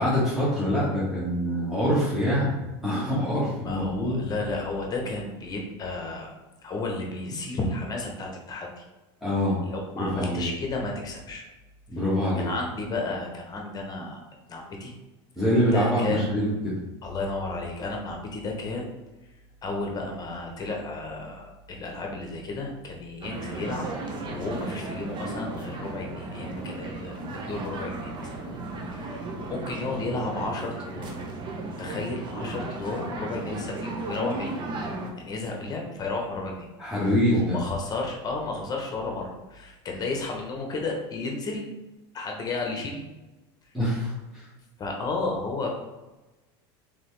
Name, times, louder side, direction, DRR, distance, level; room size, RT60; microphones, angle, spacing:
voice 1, 0.0-2.6 2.8-4.2 9.2-9.6 9.9-10.5 11.9-12.5 15.4-16.9 28.4-28.6 36.8-37.6 43.7-44.5, equal, ahead, -10 dB, 1.3 m, -25 dB
voice 2, 3.6-6.3 6.6-8.7 9.6-11.4 12.4-14.2 14.5-14.9 15.7-16.3 17.0-18.9 19.6-23.9 24.2-28.3 28.9-31.1 31.7-34.5 35.2-36.7 37.3-41.6 42.1-43.0 44.8-45.7, left 3 dB, 30° left, 1 dB, 1.0 m, -32 dB
sound 1, 23.2-35.1, right 2 dB, 35° right, 0.8 m, -35 dB
3.9 x 3.5 x 3.3 m, 1.1 s
supercardioid pair, 115°, 13 cm